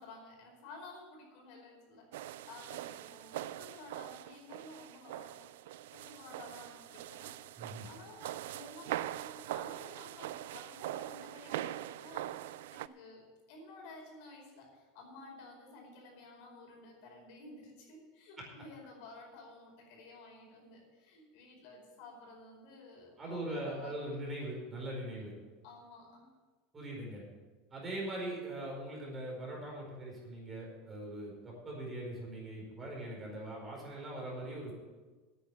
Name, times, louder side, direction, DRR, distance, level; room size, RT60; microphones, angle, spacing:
voice 1, 0.0-5.5 5.9-7.4 7.8-24.0 25.6-26.3, left 2 dB, 65° left, 0 dB, 4.8 m, -53 dB
sound 1, 2.1-12.9, right 14 dB, 80° right, 0.4 m, -42 dB
voice 2, 7.6-7.9 18.4-18.5 23.2-25.3 26.7-27.2 27.7-34.7, right 1 dB, 20° right, -2 dB, 4.8 m, -41 dB
9.4 x 9.2 x 8.3 m, 1.3 s
supercardioid pair, 135°, 0 cm